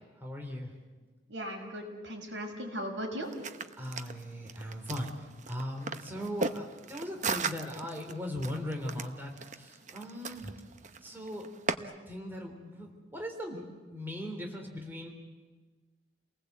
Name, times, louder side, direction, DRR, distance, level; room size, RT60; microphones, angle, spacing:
voice 1, 0.2-0.7 3.8-5.1 5.5-10.5 11.0-15.1, equal, 10° right, 1 dB, 3.5 m, -39 dB
voice 2, 1.3-3.3, equal, 85° right, 2 dB, 6.4 m, -38 dB
sound 1, 3.2-11.7, right 4 dB, 40° right, 0.9 m, -38 dB
30.0 x 19.5 x 8.2 m, 1.4 s
head